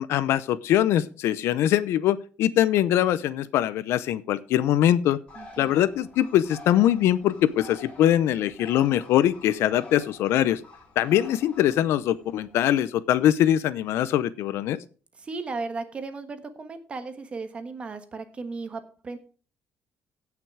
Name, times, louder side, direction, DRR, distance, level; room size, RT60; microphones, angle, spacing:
voice 1, 0.0-5.2 5.6-10.6 11.0-14.8, left 12 dB, 80° left, 16 dB, 0.7 m, -22 dB
Bird, 5.3-12.7, left 2 dB, 25° left, 3.1 m, -48 dB
voice 2, 5.3-5.8 11.4-11.5 15.1-19.2, right 3 dB, 25° right, 9 dB, 1.3 m, -36 dB
16.0 x 6.0 x 4.7 m, 0.38 s
cardioid pair, 160°, 4 cm